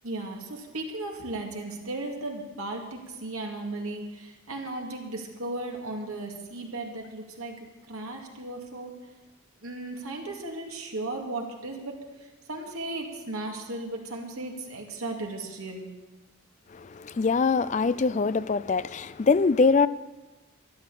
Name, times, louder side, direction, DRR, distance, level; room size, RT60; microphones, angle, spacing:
voice 1, 0.0-7.5 7.9-8.9 9.6-15.9, right 2 dB, 90° right, 2.2 m, -36 dB
voice 2, 16.7-19.9, left 4 dB, 35° left, 0.3 m, -23 dB
12.5 x 11.0 x 6.9 m
head